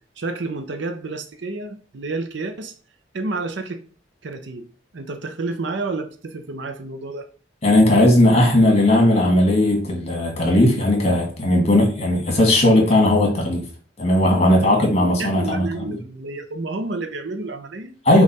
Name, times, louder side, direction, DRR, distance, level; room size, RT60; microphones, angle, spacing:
voice 1, 0.2-2.7 3.1-3.8 4.2-4.7 4.9-7.3 14.5-14.6 14.9-17.9, right 3 dB, 70° right, 0.6 m, -30 dB
voice 2, 7.6-13.7 14.0-15.8 18.0-18.2, left 1 dB, 35° left, 1.5 m, -17 dB
5.2 x 2.5 x 4.1 m
head